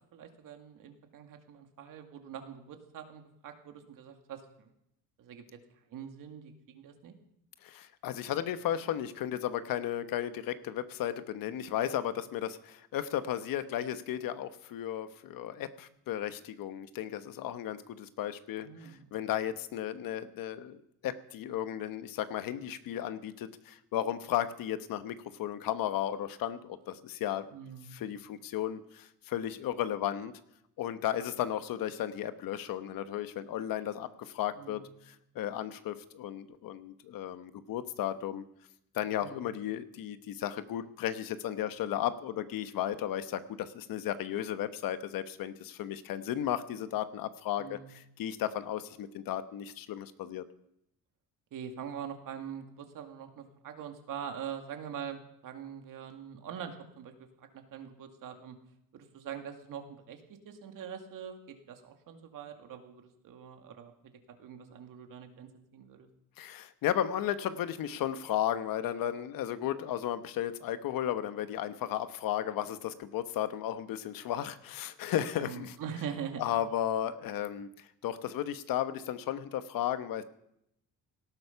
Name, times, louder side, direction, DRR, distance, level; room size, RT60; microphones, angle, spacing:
voice 1, 0.1-4.7 5.2-5.4 5.9-7.1 18.6-19.2 27.5-28.0 34.6-35.0 39.2-39.5 47.6-48.0 51.5-58.6 58.9-63.9 64.3-66.1 75.4-76.4, right 8 dB, 65° right, 5 dB, 2.3 m, -44 dB
voice 2, 7.6-27.5 27.9-30.3 30.8-38.4 38.9-47.8 48.2-50.4 66.4-75.7 76.4-77.7 78.0-80.2, left 11 dB, 70° left, 11 dB, 1.1 m, -34 dB
18.0 x 12.5 x 5.8 m, 0.79 s
cardioid pair, 115°, 35 cm